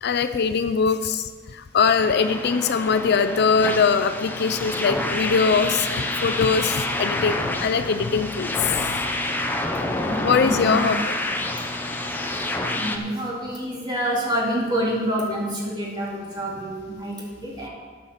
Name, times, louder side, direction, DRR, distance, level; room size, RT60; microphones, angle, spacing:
voice 1, 0.0-8.9 10.2-11.1, left 5 dB, 55° left, 10 dB, 0.4 m, -22 dB
sound 1, 2.0-13.0, left 1 dB, 10° left, 0.7 m, -28 dB
voice 2, 9.9-10.9 12.7-17.7, equal, 20° right, -4 dB, 2.6 m, -27 dB
12.0 x 5.6 x 6.5 m, 1.5 s
head